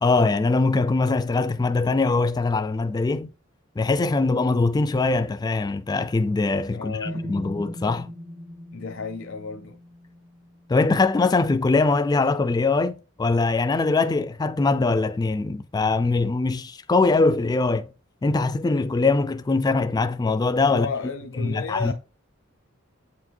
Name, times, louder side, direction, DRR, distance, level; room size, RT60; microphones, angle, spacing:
voice 1, 0.0-3.3 3.8-8.1 10.7-17.9 18.2-20.9 21.4-21.9, left 3 dB, 20° left, 0.3 m, -22 dB
voice 2, 6.7-7.4 8.7-9.8 20.7-21.9, left 5 dB, 70° left, 0.6 m, -33 dB
sound 1, 7.0-11.0, equal, 60° right, 2.0 m, -38 dB
8.2 x 4.8 x 2.6 m
head